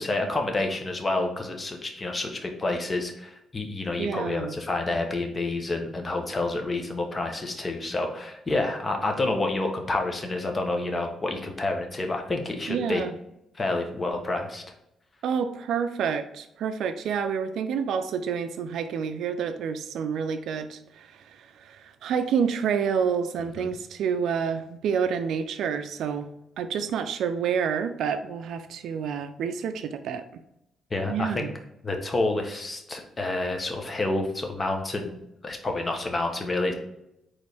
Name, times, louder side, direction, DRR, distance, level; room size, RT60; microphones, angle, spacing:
voice 1, 0.0-13.0 13.5-14.6 23.6-23.7 30.9-31.5 31.8-35.2 35.4-36.7, left 2 dB, 25° left, 3 dB, 0.8 m, -29 dB
voice 2, 4.0-4.5 12.7-13.2 15.2-21.1 21.6-26.3 26.6-30.2 31.1-31.5, right 7 dB, 80° right, 8 dB, 0.3 m, -28 dB
4.3 x 3.1 x 3.3 m, 0.83 s
cardioid pair, 105°, 0 cm